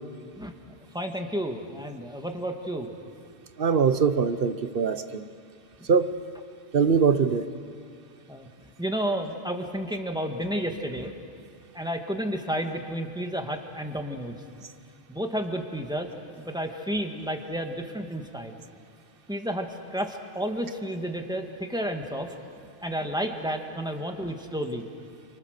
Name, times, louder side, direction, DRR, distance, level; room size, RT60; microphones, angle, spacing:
voice 1, 0.9-2.9 8.3-8.5 8.8-11.1 11.7-14.4 15.1-16.1 16.4-18.6 19.3-22.3 22.8-24.9, equal, 5° right, 3 dB, 1.8 m, -31 dB
voice 2, 3.6-5.2 5.9-6.1 6.7-7.5, right 6 dB, 55° right, 11 dB, 1.1 m, -22 dB
28.5 x 25.5 x 6.7 m, 2.3 s
omnidirectional pair, 1.1 m